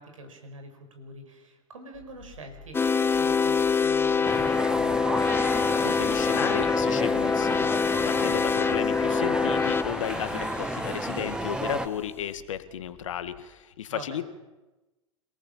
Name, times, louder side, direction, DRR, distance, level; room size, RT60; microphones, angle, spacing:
voice 1, 0.0-5.0 13.9-14.3, right 1 dB, 80° right, 6 dB, 5.3 m, -45 dB
sound 1, 1.9-13.4, left 5 dB, 50° left, 2.1 m, -52 dB
sound 2, 2.7-11.7, left 5 dB, 15° left, 0.7 m, -25 dB
sound 3, 4.2-11.9, right 1 dB, 5° right, 1.5 m, -32 dB
voice 2, 5.8-7.7 8.1-14.3, left 10 dB, 70° left, 11 dB, 1.9 m, -34 dB
27.0 x 18.5 x 7.4 m, 1.1 s
hypercardioid pair, 95°, 17 cm